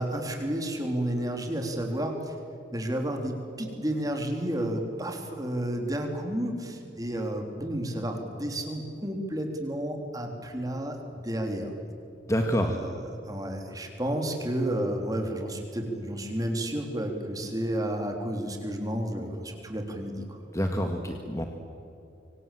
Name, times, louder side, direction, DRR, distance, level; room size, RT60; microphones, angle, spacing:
voice 1, 0.0-2.3 2.7-11.7 12.6-13.0 13.3-20.7, right 1 dB, 20° right, 3 dB, 3.6 m, -31 dB
voice 2, 12.3-12.8 20.5-21.4, equal, 15° left, 3 dB, 1.7 m, -27 dB
26.0 x 25.5 x 7.7 m, 2.7 s
head